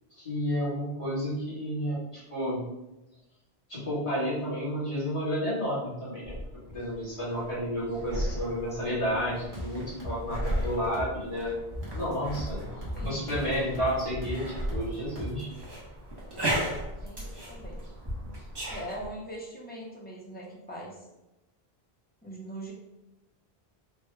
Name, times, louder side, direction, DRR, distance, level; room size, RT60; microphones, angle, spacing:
voice 1, 0.2-2.6 3.7-6.3 6.7-11.5 11.9-12.7 13.0-15.5, equal, 30° left, -9 dB, 1.4 m, -31 dB
sound 1, 6.2-19.1, right 1 dB, 25° right, 0.7 m, -36 dB
sound 2, 9.5-15.5, equal, 50° right, 1.0 m, -39 dB
voice 2, 12.9-13.3 16.3-16.6 17.0-17.8 18.7-21.1 22.2-22.7, right 1 dB, 10° left, -3 dB, 0.5 m, -41 dB
3.4 x 2.2 x 3.2 m, 0.97 s
omnidirectional pair, 1.1 m